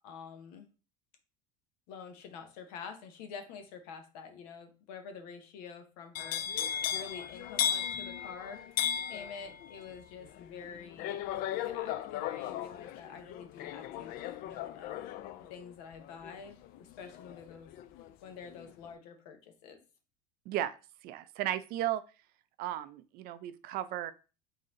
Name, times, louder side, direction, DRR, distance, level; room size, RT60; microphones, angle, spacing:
voice 1, 0.0-0.7 1.9-6.6 6.9-8.6 9.1-11.2 11.6-15.0 15.5-17.7 18.2-19.8, left 6 dB, 80° left, 6 dB, 1.0 m, -47 dB
sound 1, 6.1-18.1 18.4-18.9, left 9 dB, 50° left, 0.4 m, -37 dB
voice 2, 20.5-20.8 21.0-22.0 22.6-24.1, right 13 dB, 50° right, 13 dB, 0.4 m, -35 dB
4.1 x 2.8 x 3.7 m, 0.33 s
supercardioid pair, 125°, 20 cm